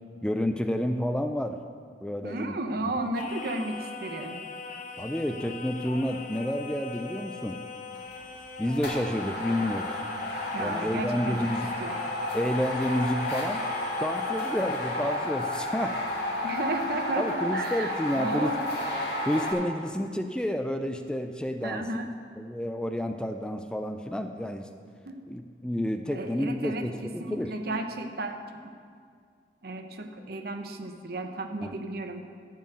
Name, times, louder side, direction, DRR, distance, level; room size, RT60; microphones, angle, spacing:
voice 1, 0.2-1.6 2.0-2.6 2.8-2.9 5.0-7.6 8.6-10.0 10.6-11.7 12.3-13.7 14.0-16.0 17.2-18.5 19.3-21.9 22.4-24.7 25.3-27.5 31.6-31.7, equal, 5° left, 7 dB, 0.3 m, -30 dB
voice 2, 2.2-4.4 10.5-11.4 11.8-11.9 16.4-18.6 21.6-22.1 25.1-25.2 26.1-28.4 29.6-32.3, right 2 dB, 60° right, 6 dB, 0.8 m, -33 dB
Singing, 3.1-15.2, left 4 dB, 45° left, 0.7 m, -41 dB
sound 1, 7.9-8.2 8.7-19.5, left 1 dB, 65° left, 1.9 m, -32 dB
12.0 x 4.6 x 7.6 m, 2.1 s
head